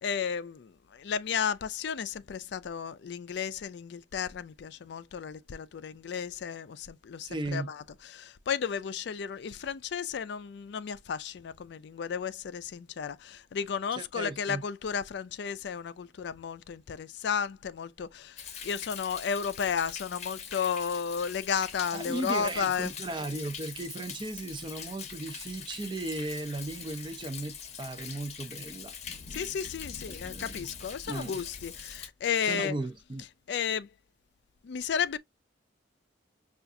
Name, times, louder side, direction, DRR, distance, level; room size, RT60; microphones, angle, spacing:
voice 1, 0.0-7.8 8.1-18.3 18.6-22.9 29.3-32.7 33.5-33.9 34.6-35.2, left 7 dB, 65° left, 0.4 m, -33 dB
voice 2, 7.2-7.7 13.9-14.6 21.9-28.9 30.1-30.7 31.1-31.4 32.4-33.2, right 2 dB, 25° right, 0.5 m, -36 dB
Thunder, 18.4-32.1, left 7 dB, 35° left, 0.7 m, -43 dB
5.7 x 2.4 x 2.5 m
head